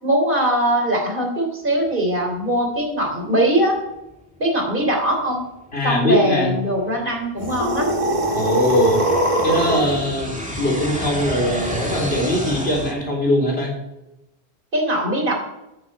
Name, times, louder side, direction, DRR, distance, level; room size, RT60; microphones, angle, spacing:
voice 1, 0.0-3.8 4.4-5.4 5.8-7.9 14.7-15.3, right 1 dB, 55° right, 1 dB, 3.7 m, -21 dB
sound 1, 4.1-4.2 4.8-4.9 5.6-12.9, equal, 5° right, 2.1 m, -31 dB
voice 2, 5.7-6.6 8.3-9.0 9.4-13.8, left 1 dB, 75° left, -1 dB, 4.0 m, -21 dB
sound 2, 7.4-10.0, right 1 dB, 30° right, 2.0 m, -21 dB
13.0 x 11.0 x 4.8 m, 0.93 s
omnidirectional pair, 1.1 m